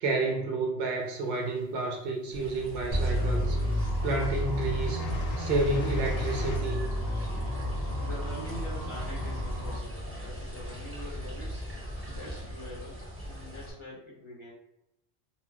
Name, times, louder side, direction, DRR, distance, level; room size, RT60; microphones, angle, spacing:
voice 1, 0.0-3.6 4.0-5.1 5.4-6.9, right 3 dB, 60° right, 1 dB, 0.7 m, -30 dB
sound 1, 1.2-2.1 2.9-3.1 3.4-6.6, left 4 dB, 80° left, 0.9 m, -42 dB
sound 2, 2.3-13.7, equal, 15° right, 0.9 m, -41 dB
sound 3, 2.9-9.8, equal, 10° left, 1.3 m, -31 dB
voice 2, 8.0-11.6 12.1-14.5, equal, 30° left, -6 dB, 0.8 m, -44 dB
3.7 x 2.3 x 2.2 m, 0.87 s
omnidirectional pair, 1.2 m